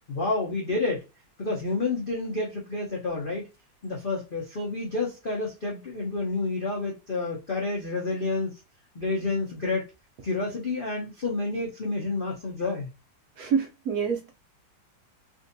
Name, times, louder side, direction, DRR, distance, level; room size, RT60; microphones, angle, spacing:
voice 1, 0.1-1.0 1.4-3.5 3.8-8.6 8.9-9.8 10.2-12.9, left 3 dB, 60° left, 0.5 m, -29 dB
voice 2, 13.4-14.3, right 6 dB, 70° right, 0.9 m, -27 dB
3.6 x 2.6 x 2.6 m
omnidirectional pair, 2.0 m